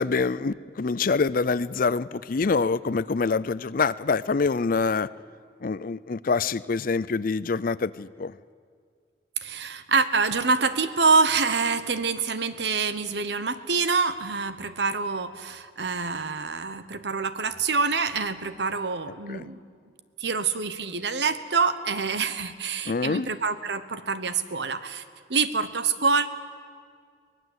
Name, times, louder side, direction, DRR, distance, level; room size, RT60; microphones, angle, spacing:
voice 1, 0.0-5.1 5.6-8.3 19.3-19.4 22.9-23.3, left 4 dB, 50° left, 16 dB, 0.5 m, -25 dB
voice 2, 9.4-19.6 20.2-25.0 25.3-26.3, right 4 dB, 70° right, 12 dB, 1.1 m, -26 dB
24.0 x 19.0 x 8.1 m, 2.1 s
head